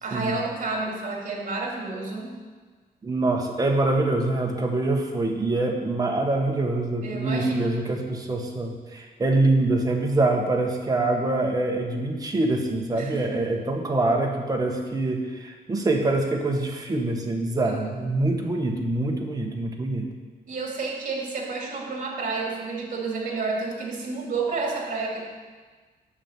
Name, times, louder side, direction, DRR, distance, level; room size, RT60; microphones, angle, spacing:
voice 1, 0.0-2.3 7.0-7.8 13.0-13.4 17.6-17.9 20.5-25.3, right 3 dB, 50° right, 0 dB, 2.5 m, -30 dB
voice 2, 3.0-20.1, right 2 dB, 25° right, 1 dB, 1.3 m, -25 dB
8.9 x 7.4 x 7.2 m, 1.4 s
wide cardioid pair, 165°, 16 cm